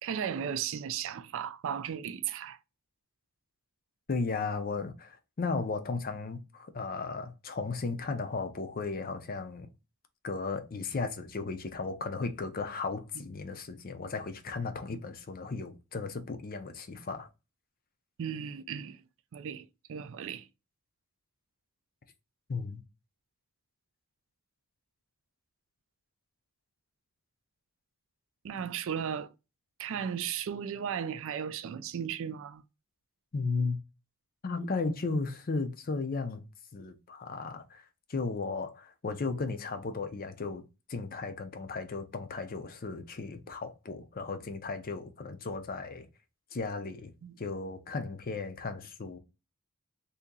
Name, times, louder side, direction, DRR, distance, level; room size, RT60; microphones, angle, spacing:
voice 1, 0.0-2.6 18.2-19.0 19.3-20.5 28.4-29.3 29.8-32.6 47.2-47.4, right 8 dB, 65° right, 0.4 m, -35 dB
voice 2, 4.1-9.7 10.2-17.3 22.5-22.8 33.3-33.8 34.4-36.4 36.7-37.8 38.1-40.6 40.9-46.1 46.5-47.1 47.4-49.2, left 4 dB, 45° left, 0.6 m, -35 dB
2.8 x 2.7 x 3.6 m
head